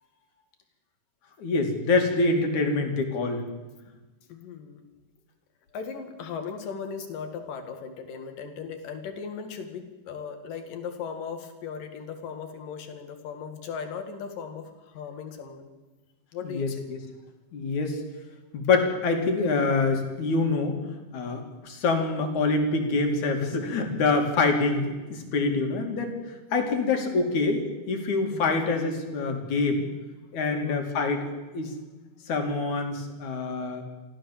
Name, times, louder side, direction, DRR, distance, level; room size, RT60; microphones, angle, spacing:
voice 1, 1.4-3.4 16.4-17.0 17.5-18.0 18.5-20.8 21.1-26.1 26.5-29.9 30.3-31.3 31.5-31.7 32.3-33.8, left 3 dB, 65° left, 4 dB, 3.9 m, -25 dB
voice 2, 4.3-4.8 5.7-15.7 16.3-16.8 28.2-28.6 30.5-30.8, left 6 dB, 90° left, 7 dB, 3.7 m, -37 dB
25.0 x 15.0 x 7.5 m, 1.2 s
omnidirectional pair, 3.8 m